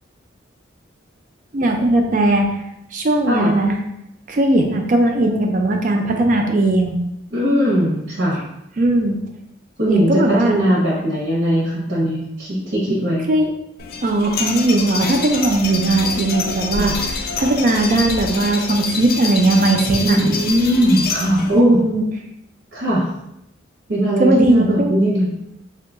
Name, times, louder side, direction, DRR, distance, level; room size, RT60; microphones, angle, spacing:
voice 1, 1.5-2.5 2.9-3.7 4.3-7.0 8.8-9.2 9.9-10.5 13.3-13.5 14.0-16.9 17.4-20.2 21.5-22.0 24.2-24.9, right 2 dB, 45° right, 3 dB, 0.4 m, -18 dB
voice 2, 7.3-8.4 9.8-13.3 16.8-16.9 20.0-21.8 22.7-23.1 23.9-25.3, equal, 75° right, -7 dB, 0.8 m, -19 dB
sound 1, 13.8-21.6, left 4 dB, 50° left, 0.3 m, -26 dB
2.7 x 2.3 x 3.7 m, 0.82 s
head